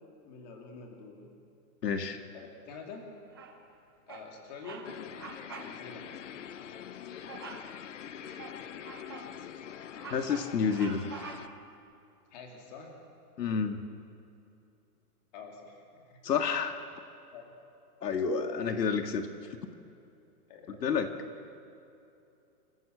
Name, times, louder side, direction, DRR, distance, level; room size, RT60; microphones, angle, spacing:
voice 1, 0.2-1.3 2.3-3.1 4.1-4.9 5.6-6.1 12.3-13.0 15.3-16.2 17.3-17.5 20.5-21.4, left 4 dB, 25° left, 1 dB, 2.7 m, -47 dB
voice 2, 1.8-2.2 7.1-7.3 10.1-11.1 13.4-13.8 16.2-16.8 18.0-19.3 20.8-21.1, left 6 dB, 80° left, 6 dB, 1.8 m, -29 dB
Bird vocalization bird call bird song, 3.3-3.7 4.1-4.3 4.6-4.9 5.1-5.7 6.1-6.2 7.3-7.7 8.2-9.3 9.7-11.7, right 5 dB, 15° right, 0.7 m, -46 dB
sound 1, 4.8-11.5, left 9 dB, 50° left, 0.7 m, -44 dB
27.0 x 15.0 x 7.8 m, 2.7 s
hypercardioid pair, 175°, 48 cm